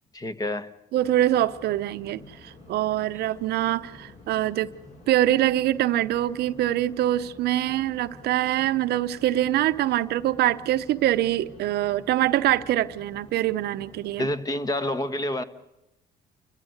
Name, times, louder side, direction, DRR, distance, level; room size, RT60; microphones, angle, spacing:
voice 1, 0.1-0.7 14.2-15.4, left 1 dB, 20° left, 1.4 m, -28 dB
sound 1, 0.9-14.3, left 2 dB, 45° left, 5.4 m, -49 dB
voice 2, 0.9-4.7 5.1-14.3, right 13 dB, 75° right, 0.8 m, -24 dB
29.5 x 15.0 x 8.0 m
cardioid pair, 110°, 17 cm